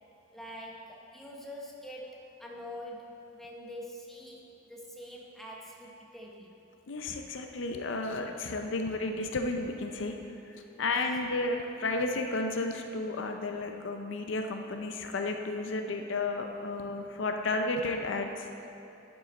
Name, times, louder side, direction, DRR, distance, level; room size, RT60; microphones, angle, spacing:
voice 1, 0.3-6.5 10.7-10.9, equal, ahead, -2 dB, 0.8 m, -45 dB
voice 2, 6.9-10.1 10.5-18.7, left 2 dB, 65° left, 4 dB, 0.5 m, -32 dB
11.0 x 5.5 x 4.3 m, 2.8 s
head